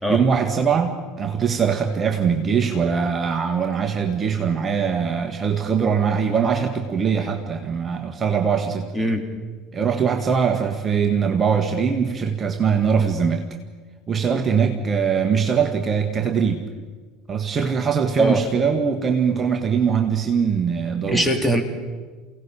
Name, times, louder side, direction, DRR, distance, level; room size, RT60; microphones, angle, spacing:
voice 1, 0.1-8.9 9.7-13.5 14.1-16.7 17.3-21.3, right 6 dB, 30° right, 3 dB, 1.8 m, -22 dB
voice 2, 8.9-9.3 18.2-18.4 21.1-21.6, equal, 5° left, 4 dB, 3.4 m, -21 dB
29.0 x 17.5 x 5.2 m, 1.4 s
hypercardioid pair, 70°, 0 cm